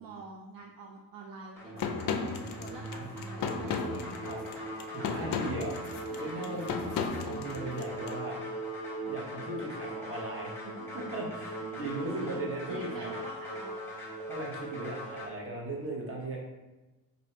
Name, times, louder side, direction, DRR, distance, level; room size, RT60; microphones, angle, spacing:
voice 1, 0.0-2.1 2.6-4.3 5.0-5.4 6.1-7.2 11.6-13.9, right 4 dB, 55° right, 0 dB, 0.5 m, -47 dB
sound 1, 1.6-15.3, right 1 dB, 5° left, 1.2 m, -39 dB
sound 2, 1.8-8.1, left 6 dB, 50° left, 0.4 m, -35 dB
voice 2, 4.9-5.8 6.2-6.7 7.2-8.4 9.1-13.1 14.3-16.4, right 2 dB, 30° right, -2 dB, 1.0 m, -38 dB
2.8 x 2.7 x 4.3 m, 1.1 s
cardioid pair, 105°, 43 cm